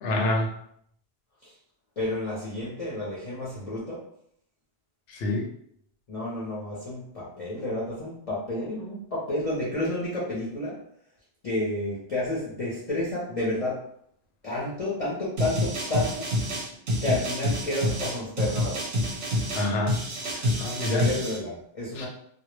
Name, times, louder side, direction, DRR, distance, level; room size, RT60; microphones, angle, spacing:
voice 1, 0.0-0.5 5.1-5.5 19.5-20.0 20.3-21.0 22.0-22.1, left 1 dB, 80° left, 1 dB, 0.8 m, -27 dB
voice 2, 2.0-4.1 6.1-10.8 11.4-13.9 14.4-16.3 17.0-18.9 20.8-22.1, left 1 dB, 40° left, -7 dB, 0.6 m, -30 dB
sound 1, 15.4-21.4, left 1 dB, 90° right, 0.9 m, -28 dB
2.1 x 2.0 x 3.0 m, 0.69 s
omnidirectional pair, 1.1 m